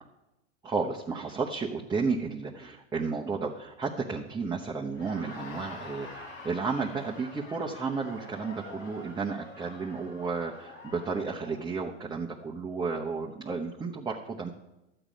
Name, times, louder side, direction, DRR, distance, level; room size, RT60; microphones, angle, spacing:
voice 1, 0.6-14.5, right 4 dB, 10° right, -1 dB, 0.9 m, -32 dB
Laughter, 4.9-11.7, left 2 dB, 85° left, 4.2 m, -46 dB
Human voice, 5.3-7.2, left 5 dB, 40° left, 1.3 m, -49 dB
12.0 x 8.8 x 5.2 m, 0.95 s
hypercardioid pair, 115°, 37 cm